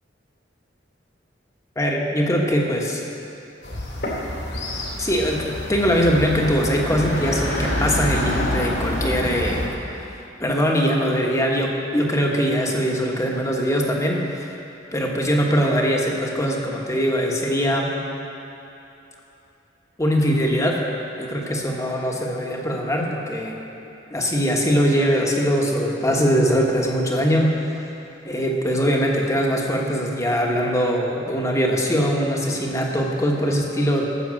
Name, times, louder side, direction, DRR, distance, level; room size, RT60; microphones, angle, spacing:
voice 1, 1.8-3.0 5.0-5.4 5.7-9.6 10.4-14.5 14.9-17.9 20.0-20.8 21.2-23.6 24.1-27.5 28.2-34.1, equal, 15° left, -1 dB, 1.3 m, -21 dB
sound 1, 3.6-9.7, left 1 dB, 60° left, 2.3 m, -27 dB
12.5 x 7.1 x 7.6 m, 2.9 s
head